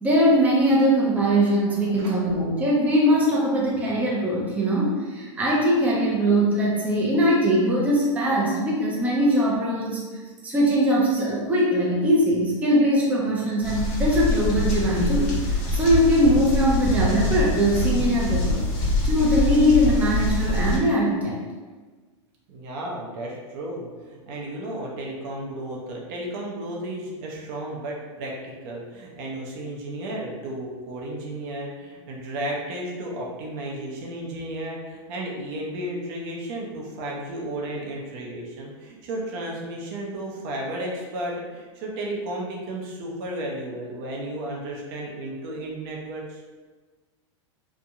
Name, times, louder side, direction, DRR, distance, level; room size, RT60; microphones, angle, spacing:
voice 1, 0.0-10.0 10.4-18.6 19.0-21.4, equal, 10° right, -5 dB, 0.5 m, -21 dB
sound 1, 13.6-20.8, left 1 dB, 50° left, 1.1 m, -24 dB
voice 2, 22.5-46.4, right 1 dB, 50° right, -2 dB, 0.7 m, -33 dB
2.8 x 2.2 x 2.5 m, 1.3 s
hypercardioid pair, 110°, 16 cm